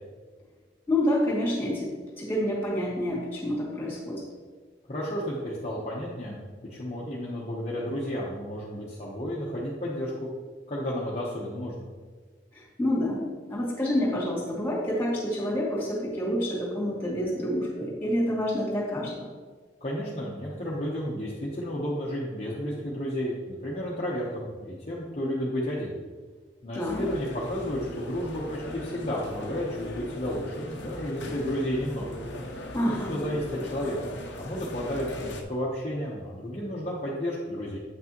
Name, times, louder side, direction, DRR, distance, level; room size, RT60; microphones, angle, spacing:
voice 1, 0.9-1.9 2.2-4.2 12.8-13.2 13.5-19.3 26.7-27.0 32.7-33.1, left 1 dB, 15° left, -5 dB, 2.2 m, -28 dB
voice 2, 4.9-6.4 6.7-10.3 10.7-11.8 19.8-25.9 26.6-32.2 32.8-37.8, equal, 35° left, -6 dB, 1.0 m, -32 dB
sound 1, 26.8-35.4, left 1 dB, 85° left, 0.8 m, -39 dB
8.4 x 6.0 x 3.0 m, 1.5 s
head